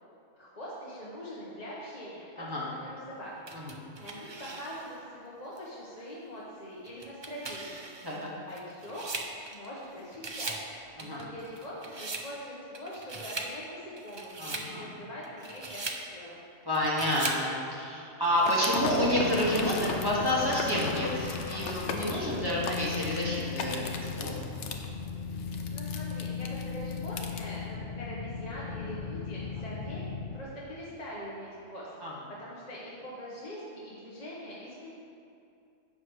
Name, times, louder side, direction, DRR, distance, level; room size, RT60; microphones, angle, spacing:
voice 1, 0.3-3.3 3.6-3.7 4.0-7.8 8.5-10.5 11.0-15.8 16.1-16.4 25.7-30.0 30.3-31.9 32.4-34.9, equal, 35° left, -7 dB, 1.2 m, -43 dB
sound 1, 3.5-5.0 5.6-5.7 6.9-9.9 10.1-10.7 11.0-12.3 12.7-13.5 14.0-14.7 15.2-16.0 16.7-17.5, right 3 dB, 35° right, 0.4 m, -39 dB
voice 2, 14.4-14.9 16.6-23.8 24.1-24.4 29.6-29.7 32.0-32.1, equal, 20° right, -6 dB, 1.7 m, -29 dB
sound 2, 18.4-27.4, left 4 dB, 65° left, 1.0 m, -38 dB
sound 3, 18.8-30.4, left 5 dB, 50° left, 0.6 m, -37 dB
11.0 x 7.5 x 3.2 m, 2.5 s
omnidirectional pair, 1.3 m